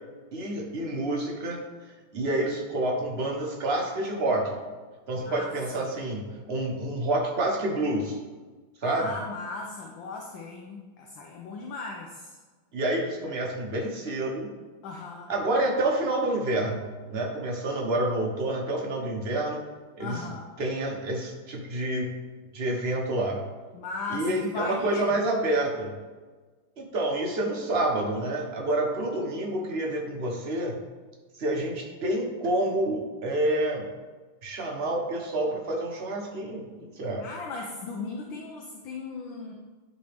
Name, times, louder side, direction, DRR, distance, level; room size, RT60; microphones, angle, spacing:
voice 1, 0.3-4.6 5.1-8.2 8.8-9.1 12.7-14.5 15.3-19.6 20.0-20.3 20.6-22.1 22.5-23.4 24.1-26.0 26.8-30.8 31.4-33.9 34.4-36.7 36.9-37.3, right 1 dB, 45° right, 0 dB, 0.8 m, -28 dB
voice 2, 5.1-5.5 5.8-5.9 8.8-12.3 14.8-15.3 20.0-20.5 23.7-25.1 37.2-39.5, left 4 dB, 70° left, 0 dB, 1.4 m, -37 dB
10.5 x 4.1 x 3.4 m, 1.4 s
omnidirectional pair, 2.3 m